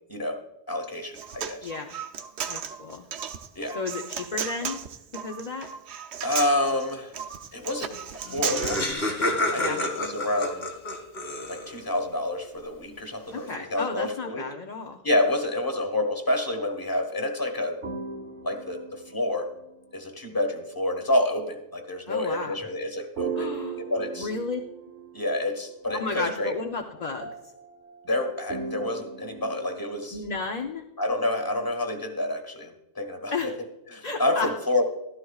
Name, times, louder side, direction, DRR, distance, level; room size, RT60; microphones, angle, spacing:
voice 1, 0.1-0.4 0.7-1.7 3.5-3.8 6.2-7.2 7.5-8.8 9.5-10.7 11.5-14.4 15.0-17.8 18.4-19.5 19.9-23.5 23.8-24.3 25.1-26.5 28.0-30.2 31.0-33.5 33.9-34.8, left 1 dB, 20° left, 5 dB, 1.3 m, -28 dB
Human voice, 0.9-8.9, right 7 dB, 70° right, 1.0 m, -35 dB
voice 2, 1.6-2.0 2.5-3.1 3.7-4.8 5.2-5.7 9.6-9.8 13.3-15.0 22.1-22.6 23.3-23.8 24.2-24.6 25.9-27.3 30.1-30.8 33.3-33.5 34.0-34.5, left 4 dB, 40° left, 3 dB, 0.7 m, -32 dB
Laughter, 8.0-8.1 8.2-11.9, left 1 dB, 65° left, 2.0 m, -29 dB
sound 1, 17.8-20.1 23.2-25.4 25.9-30.1, right 6 dB, 85° right, 1.3 m, -38 dB
14.0 x 12.5 x 2.4 m, 0.85 s
omnidirectional pair, 1.2 m